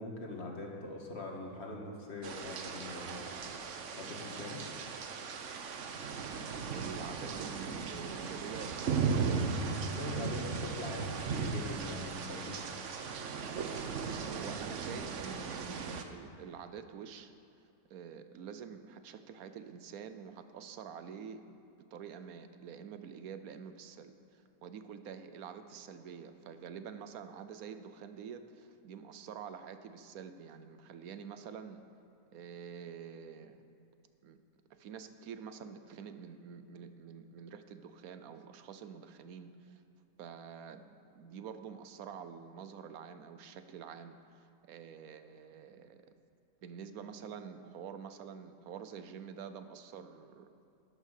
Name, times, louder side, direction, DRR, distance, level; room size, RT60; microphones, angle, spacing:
voice 1, 0.0-3.3 3.9-4.6 9.9-12.6, left 2 dB, 45° left, 0 dB, 1.9 m, -42 dB
sound 1, 2.2-16.0, right 5 dB, 60° right, 1.1 m, -37 dB
voice 2, 6.7-9.3 14.0-17.3 17.9-21.6 21.9-31.8 32.3-33.6 34.2-34.4 34.7-39.8 40.2-46.1 46.6-50.5, right 7 dB, 80° right, 10 dB, 1.2 m, -47 dB
11.5 x 10.0 x 6.6 m, 2.7 s
omnidirectional pair, 1.5 m